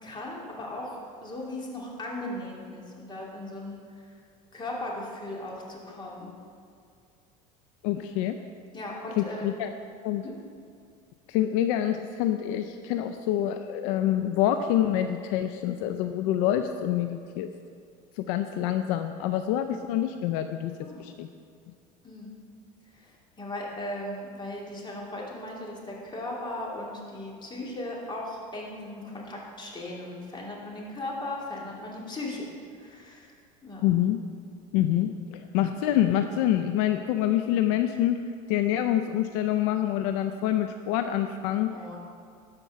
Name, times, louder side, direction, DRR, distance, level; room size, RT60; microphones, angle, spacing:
voice 1, 0.0-4.0 4.5-6.3 8.7-9.5 10.2-10.3 20.8-21.0 22.0-22.3 22.9-32.4 32.8-33.3 33.6-33.9 41.7-42.0, left 1 dB, 25° left, -3 dB, 2.9 m, -37 dB
voice 2, 7.8-8.3 9.2-9.7 10.0-10.2 11.3-17.5 18.2-20.7 21.0-21.3 33.8-34.2 34.7-38.2 38.5-41.7, left 11 dB, 70° left, 8 dB, 0.5 m, -26 dB
13.0 x 5.3 x 5.7 m, 2.3 s
supercardioid pair, 90°, 18 cm